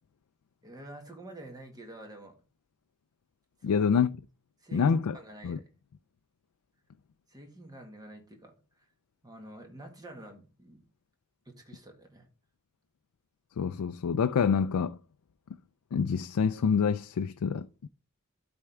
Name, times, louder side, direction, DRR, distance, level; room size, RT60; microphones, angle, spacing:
voice 1, 0.6-2.4 3.6-3.9 4.6-5.6 7.3-8.9 9.2-10.8 11.4-12.3, right 2 dB, 15° right, 1.7 m, -48 dB
voice 2, 3.6-4.2 4.7-5.2 5.4-5.6 13.6-15.0 15.9-17.9, left 6 dB, 85° left, 0.4 m, -27 dB
12.0 x 4.4 x 3.4 m
head